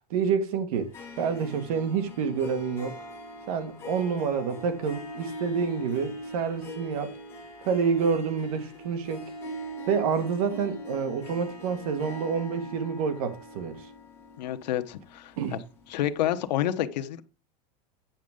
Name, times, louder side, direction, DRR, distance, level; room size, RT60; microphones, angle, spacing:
voice 1, 0.1-0.9 1.2-3.0 3.5-7.1 7.6-9.3 9.9-13.8 15.4-15.6, right 6 dB, 60° right, 1.7 m, -28 dB
Harp, 0.7-16.1, equal, 10° left, 2.8 m, -41 dB
voice 2, 14.4-15.3 15.9-17.2, left 12 dB, 85° left, 0.9 m, -28 dB
9.1 x 6.4 x 3.6 m
supercardioid pair, 175°, 21 cm